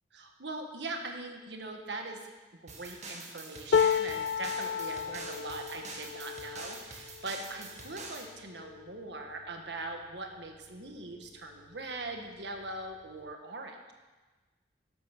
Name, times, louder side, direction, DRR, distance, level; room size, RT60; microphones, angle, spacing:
voice 1, 0.1-2.3 2.6-13.9, right 2 dB, 70° right, 3 dB, 1.7 m, -41 dB
sound 1, 2.7-8.3, right 3 dB, 40° right, 2.0 m, -45 dB
sound 2, 3.7-9.9 10.5-10.7 10.9-11.7 12.7-12.8, left 7 dB, 65° left, 0.3 m, -33 dB
12.5 x 12.0 x 6.1 m, 1.3 s
head